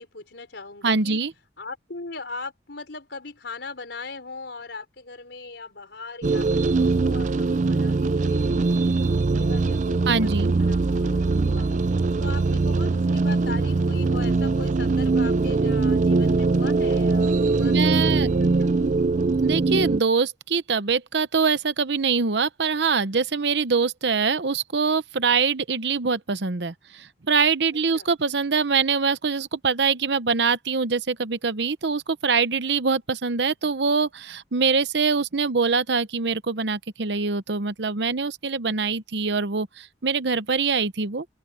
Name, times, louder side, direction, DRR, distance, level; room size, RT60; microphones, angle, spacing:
voice 1, 0.0-1.2 1.6-8.6 9.1-11.8 12.2-19.2 27.9-28.1, left 3 dB, 70° left, 4.6 m, -40 dB
voice 2, 0.8-1.3 10.1-10.5 17.6-18.3 19.4-41.3, right 5 dB, 65° right, 0.9 m, -24 dB
sound 1, 6.2-20.0, right 3 dB, 40° right, 0.4 m, -22 dB
open air
head